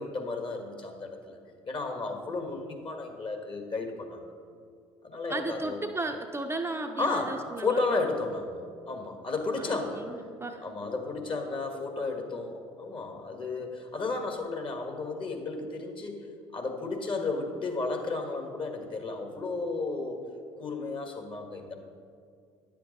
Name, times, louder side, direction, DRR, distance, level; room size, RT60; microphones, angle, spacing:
voice 1, 0.0-1.4 1.6-4.2 5.0-5.8 7.0-10.1 10.6-16.2 16.5-20.2 20.6-21.7, left 3 dB, 40° left, 4 dB, 1.6 m, -33 dB
voice 2, 5.3-7.8 9.6-10.6, right 2 dB, 15° right, 4 dB, 0.6 m, -35 dB
10.0 x 7.6 x 4.1 m, 2.2 s
hypercardioid pair, 60°, 14 cm